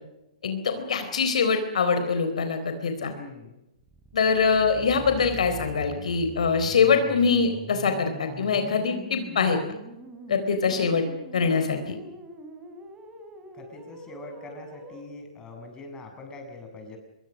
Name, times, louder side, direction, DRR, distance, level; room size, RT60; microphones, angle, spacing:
voice 1, 0.4-3.1 4.1-9.6 10.3-11.1 11.3-11.9, left 5 dB, 65° left, 7 dB, 4.0 m, -23 dB
voice 2, 3.1-3.6 13.5-17.0, left 2 dB, 20° left, 4 dB, 7.2 m, -43 dB
sound 1, 3.8-15.0, right 2 dB, 15° right, 4.9 m, -43 dB
26.0 x 23.0 x 6.4 m, 0.90 s
figure-of-eight pair, 120°, 4 cm